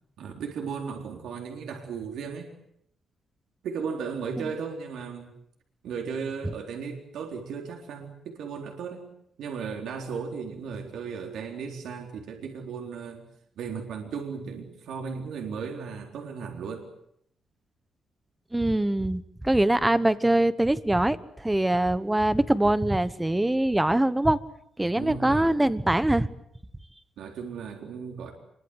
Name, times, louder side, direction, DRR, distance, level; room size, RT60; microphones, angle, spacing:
voice 1, 0.2-2.5 3.6-5.3 5.8-9.1 9.4-13.2 13.6-16.9 24.9-25.6 27.2-28.3, right 6 dB, 80° right, 2 dB, 4.1 m, -36 dB
voice 2, 18.5-21.2 21.4-24.4 24.8-26.3, right 1 dB, 10° right, 14 dB, 1.1 m, -23 dB
26.5 x 23.0 x 8.1 m, 0.71 s
cardioid pair, 135°, 0 cm